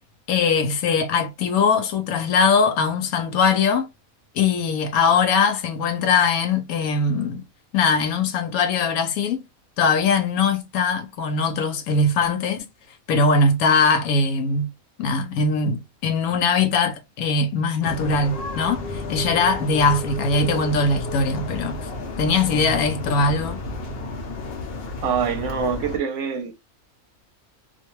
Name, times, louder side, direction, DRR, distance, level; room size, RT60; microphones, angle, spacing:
voice 1, 0.3-3.9 4.3-7.4 7.7-9.4 9.8-12.7 13.1-14.7 15.0-21.8 22.2-23.6, left 4 dB, 85° left, 1.1 m, -21 dB
sound 1, 17.8-26.0, left 2 dB, 55° left, 0.8 m, -32 dB
voice 2, 25.0-26.5, right 7 dB, 65° right, 0.9 m, -25 dB
2.6 x 2.2 x 2.9 m
omnidirectional pair, 1.5 m